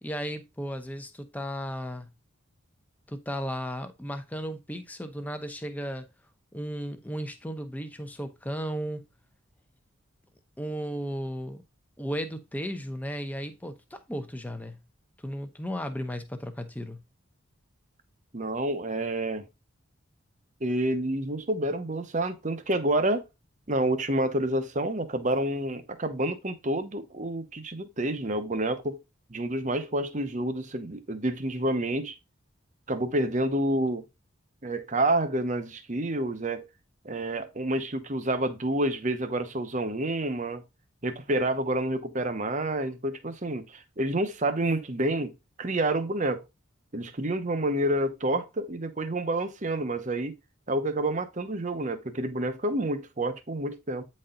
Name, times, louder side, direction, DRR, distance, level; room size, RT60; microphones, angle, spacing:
voice 1, 0.0-2.1 3.1-6.1 6.5-9.1 10.6-11.6 12.0-14.8 15.2-17.0, equal, 10° left, 0.9 m, -35 dB
voice 2, 18.3-19.4 20.6-23.2 23.7-29.0 29.3-32.1 32.9-34.0 34.6-36.6 37.0-40.6 41.0-45.3 45.6-46.4 46.9-50.3 50.7-54.0, right 1 dB, 35° right, 0.9 m, -28 dB
9.1 x 4.3 x 3.8 m
head